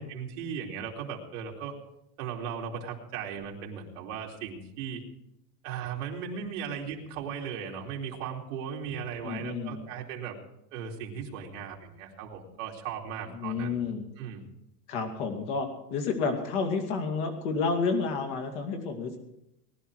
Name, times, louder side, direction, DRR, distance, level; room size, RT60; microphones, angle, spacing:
voice 1, 0.0-1.7 2.2-5.0 5.6-10.4 10.7-13.8 14.2-14.4, right 7 dB, 50° right, -1 dB, 2.9 m, -37 dB
voice 2, 9.2-9.8 13.3-14.1 14.9-19.2, left 4 dB, 45° left, 5 dB, 2.5 m, -30 dB
20.0 x 11.0 x 4.8 m, 0.86 s
supercardioid pair, 175°, 50 cm